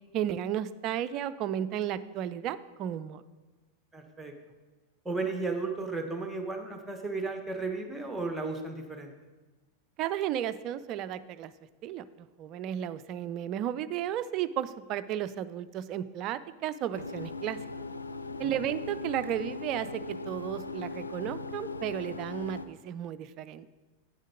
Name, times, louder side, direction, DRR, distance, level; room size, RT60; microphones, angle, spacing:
voice 1, 0.1-3.2 10.0-11.5 11.8-17.6 18.4-23.7, right 11 dB, 40° right, 14 dB, 0.4 m, -34 dB
voice 2, 3.9-4.3 5.0-9.1 18.4-18.6, right 3 dB, 5° right, 4 dB, 1.1 m, -34 dB
sound 1, 16.9-22.6, left 3 dB, 80° left, 0.5 m, -39 dB
8.5 x 6.4 x 5.0 m, 1.2 s
figure-of-eight pair, 90°, 0 cm